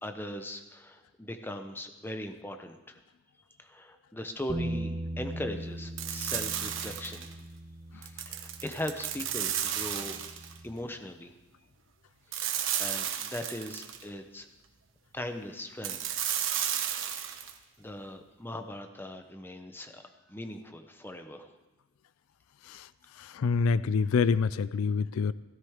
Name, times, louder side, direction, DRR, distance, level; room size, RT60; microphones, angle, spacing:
voice 1, 0.0-3.0 3.6-7.3 7.9-10.2 10.6-11.3 12.3-14.5 15.1-16.2 16.9-17.2 17.8-20.0 20.3-21.5, left 1 dB, 10° left, 6 dB, 0.7 m, -40 dB
Bass guitar, 4.5-10.7, right 1 dB, 20° right, 1.0 m, -40 dB
sound 1, 6.0-7.3 8.0-10.6 12.3-14.0 15.8-17.5, right 10 dB, 65° right, 1.1 m, -33 dB
voice 2, 23.2-25.3, left 5 dB, 85° left, 17 dB, 0.4 m, -26 dB
16.5 x 13.0 x 3.6 m, 1.1 s
head